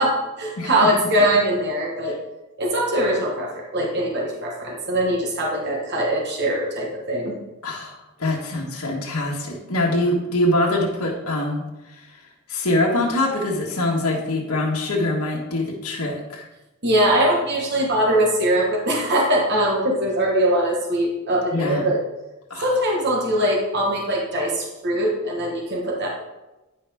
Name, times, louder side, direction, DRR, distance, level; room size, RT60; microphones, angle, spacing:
voice 1, 0.0-2.2 2.6-7.3 16.8-22.0 22.6-26.1, right 1 dB, 50° right, -1 dB, 1.3 m, -22 dB
voice 2, 7.6-12.1 12.5-16.5 21.5-21.9 22.5-22.7, left 1 dB, 90° left, -3 dB, 1.4 m, -24 dB
9.6 x 5.5 x 3.5 m, 1.0 s
head